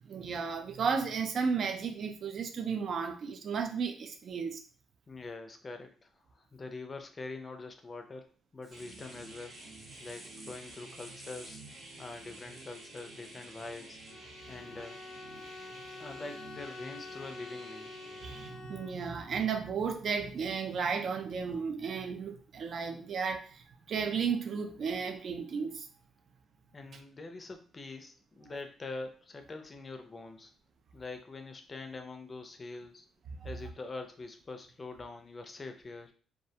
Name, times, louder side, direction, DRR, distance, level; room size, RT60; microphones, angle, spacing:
voice 1, 0.0-4.6 18.2-25.9, right 6 dB, 60° right, 6 dB, 0.4 m, -34 dB
voice 2, 5.1-8.2 8.5-9.6 10.0-11.6 12.0-14.0 14.5-15.0 16.0-17.9 26.7-30.5 30.9-33.0 33.4-36.1, left 3 dB, 30° left, 6 dB, 0.4 m, -44 dB
sound 1, 8.6-14.1, right 1 dB, 20° right, 0.9 m, -54 dB
sound 2, 8.7-18.5, right 2 dB, 80° right, 0.9 m, -51 dB
Bowed string instrument, 14.1-19.3, left 3 dB, 90° left, 0.5 m, -47 dB
2.3 x 2.1 x 2.7 m, 0.41 s
cardioid pair, 90°, 0 cm